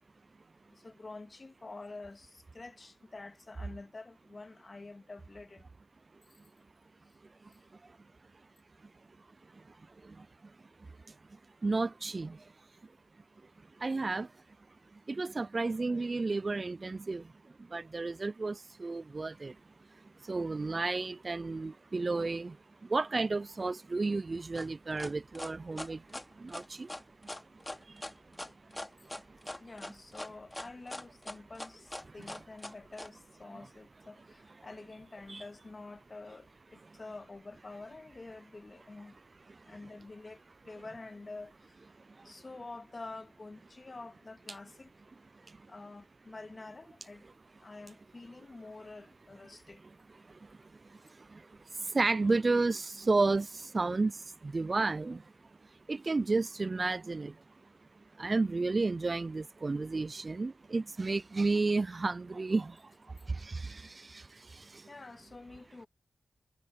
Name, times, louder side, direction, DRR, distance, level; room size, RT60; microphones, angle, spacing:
voice 1, 0.7-5.7 6.3-6.4 7.5-7.6 29.0-29.2 29.6-39.2 39.6-41.9 42.2-44.9 45.7-47.2 47.6-49.8 64.9-65.9, left 3 dB, 40° left, 1.9 m, -48 dB
voice 2, 10.0-10.5 10.8-12.5 13.8-14.3 14.9-19.6 20.2-26.9 27.2-28.7 29.0-29.4 32.1-32.2 35.3-35.4 39.5-39.6 42.1-42.3 45.5-45.7 50.2-55.3 55.9-57.4 58.2-64.9, right 3 dB, 40° right, 0.3 m, -33 dB
sound 1, 24.5-33.1, left 1 dB, 15° left, 2.5 m, -42 dB
cardioid pair, 60°, 0 cm